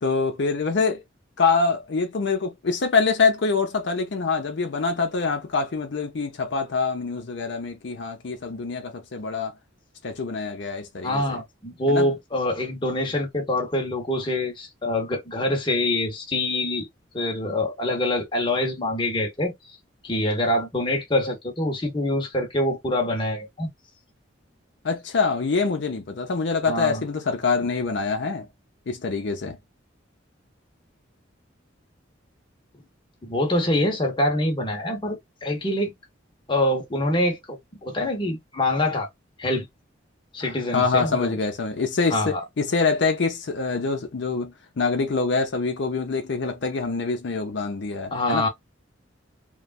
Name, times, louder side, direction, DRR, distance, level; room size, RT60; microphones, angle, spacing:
voice 1, 0.0-1.0 1.4-9.5 10.0-11.4 11.9-12.1 24.8-28.5 28.9-29.6 40.4-48.5, left 4 dB, 60° left, 0.6 m, -25 dB
voice 2, 11.0-16.9 17.1-19.5 20.0-23.7 26.7-27.0 33.2-35.9 36.5-39.1 39.4-39.6 40.3-41.4 42.1-42.4 48.1-48.5, left 1 dB, 25° left, 0.8 m, -25 dB
3.0 x 2.2 x 2.3 m
head